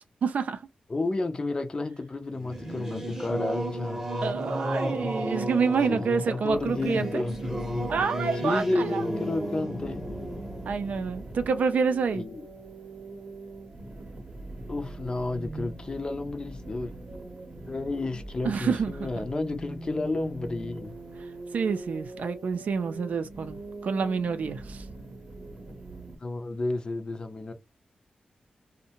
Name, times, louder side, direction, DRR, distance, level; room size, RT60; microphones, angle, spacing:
voice 1, 0.2-0.6 4.2-7.2 7.9-9.0 10.6-12.2 18.4-19.3 21.5-24.8, right 5 dB, 75° right, 0.4 m, -28 dB
voice 2, 0.9-4.0 5.6-7.4 8.3-10.0 12.1-12.4 14.7-16.9 17.7-20.9 26.2-27.5, left 2 dB, 35° left, 0.5 m, -31 dB
Singing / Musical instrument, 2.3-12.4, equal, 15° right, 0.8 m, -34 dB
sound 1, 6.5-26.2, right 2 dB, 45° right, 0.8 m, -42 dB
2.6 x 2.1 x 2.8 m
wide cardioid pair, 95°, 3 cm